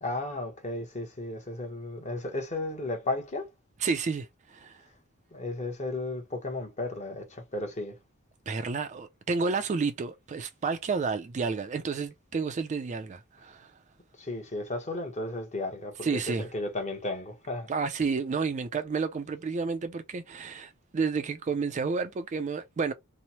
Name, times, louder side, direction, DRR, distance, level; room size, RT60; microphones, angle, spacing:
voice 1, 0.0-3.5 5.3-8.0 14.2-17.7, left 2 dB, 35° left, 0.9 m, -34 dB
voice 2, 3.8-4.8 8.5-13.7 16.0-16.5 17.7-22.9, right 4 dB, 35° right, 0.3 m, -31 dB
2.9 x 2.0 x 2.8 m
head